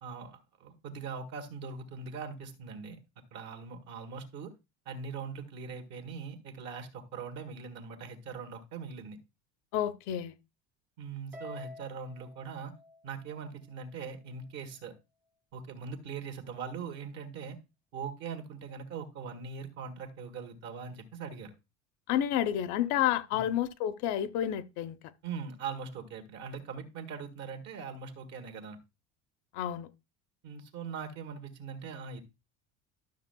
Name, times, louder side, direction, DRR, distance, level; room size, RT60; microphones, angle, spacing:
voice 1, 0.0-3.0 3.3-4.5 4.8-9.2 11.0-12.7 13.0-14.9 15.5-17.6 17.9-21.5 23.3-23.5 25.2-28.8 30.4-32.2, right 5 dB, 60° right, 1.7 m, -41 dB
voice 2, 9.7-10.3 22.1-25.0 29.5-29.9, left 11 dB, 65° left, 0.7 m, -30 dB
Harp, 11.3-13.8, left 3 dB, 5° right, 0.3 m, -49 dB
12.5 x 6.4 x 2.2 m
cardioid pair, 160°, 31 cm